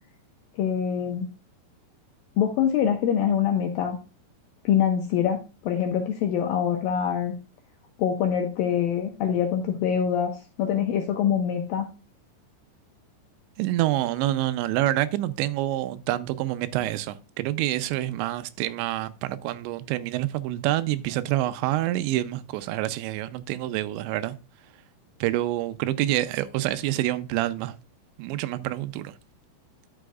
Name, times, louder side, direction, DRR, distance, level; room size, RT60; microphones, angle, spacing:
voice 1, 0.6-1.3 2.4-4.0 4.7-5.4 5.7-7.3 8.0-11.9, left 8 dB, 85° left, 2.1 m, -24 dB
voice 2, 13.6-24.4 25.2-27.7 28.2-29.1, right 14 dB, 85° right, 2.9 m, -27 dB
11.0 x 6.9 x 2.3 m
omnidirectional pair, 5.1 m